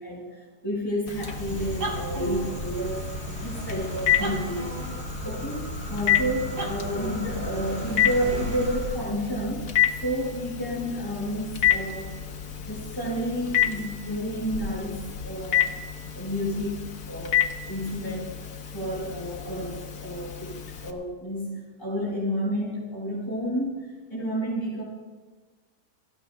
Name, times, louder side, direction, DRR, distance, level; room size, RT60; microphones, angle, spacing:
voice 1, 0.0-3.0 3.4-4.6 5.2-9.7 10.0-12.1 12.6-15.7 16.1-17.4 17.7-20.6 20.8-24.8, equal, 15° left, -6 dB, 4.4 m, -30 dB
Telephone, 1.1-20.9, left 10 dB, 65° left, 1.6 m, -30 dB
sound 1, 1.2-9.1, right 1 dB, 85° right, 4.0 m, -34 dB
28.5 x 17.5 x 2.3 m, 1.4 s
omnidirectional pair, 1.7 m